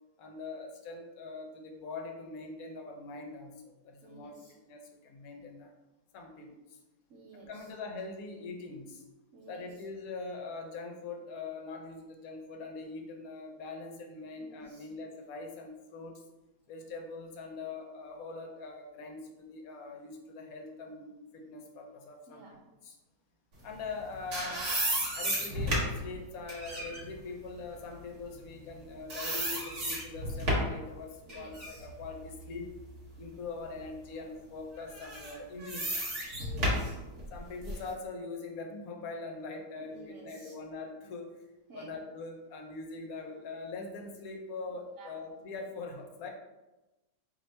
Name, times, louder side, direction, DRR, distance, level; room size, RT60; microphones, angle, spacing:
voice 1, 0.2-5.7 6.1-6.5 7.3-9.0 9.5-16.2 16.7-23.0 23.6-24.7 25.1-32.7 33.2-36.0 37.3-41.4 41.7-46.3, left 3 dB, 65° left, 3 dB, 1.0 m, -43 dB
voice 2, 4.0-4.5 7.1-7.7 9.3-9.7 14.4-14.9 22.3-22.6 31.3-31.9 36.4-37.0 39.8-40.5 41.7-41.9 45.0-45.2, right 4 dB, 65° right, -2 dB, 0.9 m, -51 dB
sound 1, 23.9-28.8 29.1-30.8 31.3-33.3 33.7-33.9 34.9-37.9, equal, 50° right, 1.3 m, -33 dB
4.1 x 2.9 x 3.2 m, 1.0 s
omnidirectional pair, 1.7 m